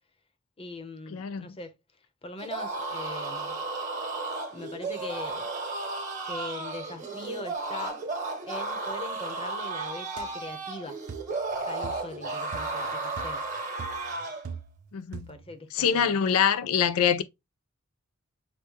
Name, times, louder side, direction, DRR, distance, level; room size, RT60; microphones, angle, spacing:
voice 1, 0.6-1.7 2.2-3.6 4.5-5.5 6.2-8.0 8.4-11.0 11.7-13.4 15.3-16.2, left 2 dB, 25° left, 0.8 m, -41 dB
voice 2, 1.1-1.5 14.9-15.3 15.7-17.2, left 8 dB, 85° left, 0.4 m, -24 dB
sound 1, 2.4-14.5, right 3 dB, 35° right, 1.4 m, -34 dB
sound 2, 10.2-10.3 11.1-11.4 11.8-12.2 12.5-12.8 13.2-13.5 13.8-14.9 15.1-15.5, right 5 dB, 85° right, 0.5 m, -42 dB
6.3 x 2.2 x 2.9 m
head